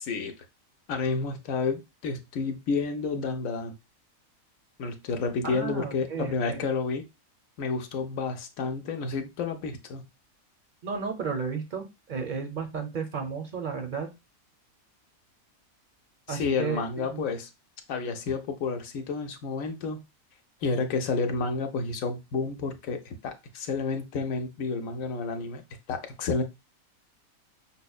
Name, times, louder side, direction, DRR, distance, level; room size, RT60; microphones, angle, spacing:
voice 1, 0.9-3.7 4.8-7.1 7.6-10.0 16.3-17.5 17.9-20.0 20.6-25.6 25.9-26.4, left 4 dB, 75° left, 1.0 m, -30 dB
voice 2, 5.4-6.7 10.8-14.1 16.3-17.3, right 5 dB, 50° right, 0.5 m, -33 dB
5.5 x 2.1 x 2.3 m
omnidirectional pair, 1.5 m